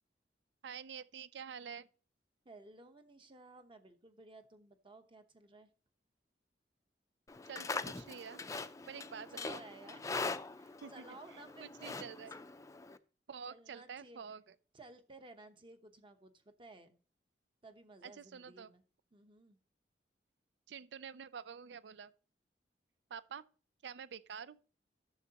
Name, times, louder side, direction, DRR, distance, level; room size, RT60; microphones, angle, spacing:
voice 1, 0.6-1.9 7.5-8.4 8.9-9.6 10.8-11.0 11.3-12.3 13.3-14.6 18.0-18.7 20.7-22.1 23.1-23.4 23.8-24.6, right 7 dB, 80° right, 0.4 m, -48 dB
voice 2, 2.4-5.7 8.9-12.1 13.5-14.4 14.7-17.0 17.6-18.8 19.1-19.6, right 2 dB, 30° right, 0.9 m, -56 dB
Livestock farm animals working animals, 7.3-13.0, left 3 dB, 20° left, 0.4 m, -42 dB
11.5 x 7.0 x 2.9 m
head